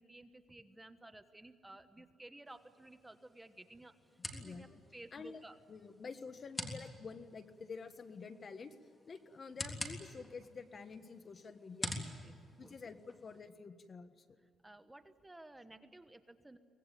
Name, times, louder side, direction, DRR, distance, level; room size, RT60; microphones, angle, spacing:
voice 1, 0.0-5.6 12.2-12.8 14.6-16.6, right 2 dB, 10° right, 9 dB, 1.2 m, -55 dB
sound 1, 2.4-13.4, left 1 dB, 15° left, 3.4 m, -48 dB
voice 2, 4.3-4.8 5.1-8.7 9.1-11.9 12.6-14.2, left 5 dB, 40° left, 9 dB, 1.4 m, -49 dB
24.0 x 19.5 x 9.2 m, 2.2 s
cardioid pair, 115°, 0 cm